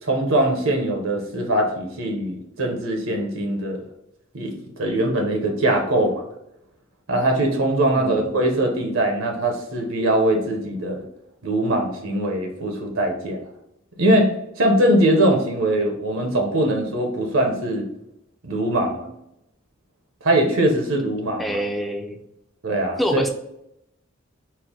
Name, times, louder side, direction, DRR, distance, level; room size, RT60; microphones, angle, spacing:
voice 1, 0.0-3.8 4.3-6.2 7.1-11.0 11.4-13.4 14.0-17.9 18.4-19.1 20.2-21.6 22.6-23.2, right 1 dB, 85° right, 2 dB, 0.9 m, -21 dB
voice 2, 8.0-8.3 21.4-22.2 23.0-23.3, equal, ahead, 3 dB, 0.4 m, -25 dB
4.4 x 2.1 x 3.7 m, 0.81 s
head